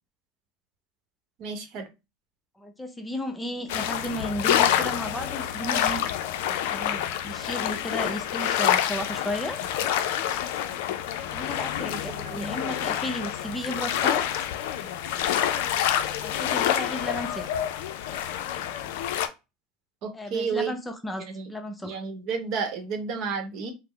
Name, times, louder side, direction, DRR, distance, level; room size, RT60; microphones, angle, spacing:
voice 1, 1.4-1.8 11.8-12.5 20.0-20.7 21.3-21.5 21.8-23.7, right 5 dB, 55° right, 5 dB, 0.8 m, -31 dB
voice 2, 2.6-6.0 6.7-9.6 11.3-14.2 16.2-17.6 20.1-22.0, left 1 dB, 10° left, 6 dB, 0.7 m, -34 dB
sound 1, 3.7-19.3, left 10 dB, 70° left, 0.4 m, -27 dB
3.4 x 2.0 x 3.2 m, 0.25 s
hypercardioid pair, 85°, 0 cm